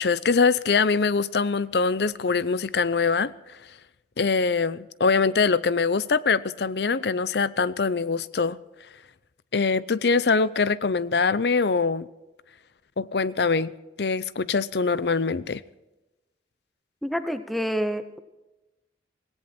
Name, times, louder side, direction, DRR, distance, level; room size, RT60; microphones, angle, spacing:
voice 1, 0.0-3.3 4.2-8.6 9.5-12.1 13.0-13.7 14.0-15.6, left 4 dB, 65° left, 0.6 m, -23 dB
voice 2, 17.0-18.2, equal, ahead, 0.8 m, -28 dB
18.0 x 17.5 x 4.4 m
head